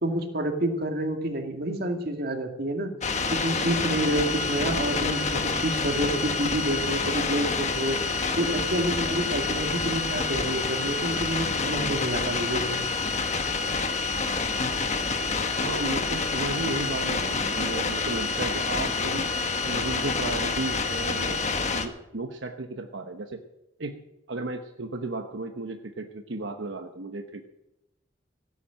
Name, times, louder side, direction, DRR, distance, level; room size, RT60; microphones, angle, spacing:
voice 1, 0.0-2.9 3.3-8.0 8.4-12.8, right 1 dB, 55° right, 4 dB, 2.2 m, -28 dB
sound 1, 3.0-21.9, left 4 dB, 40° left, 1.3 m, -28 dB
voice 2, 15.6-23.4 23.8-24.0 24.3-27.5, right 2 dB, 80° right, 5 dB, 1.0 m, -34 dB
16.0 x 8.5 x 8.7 m, 0.93 s
head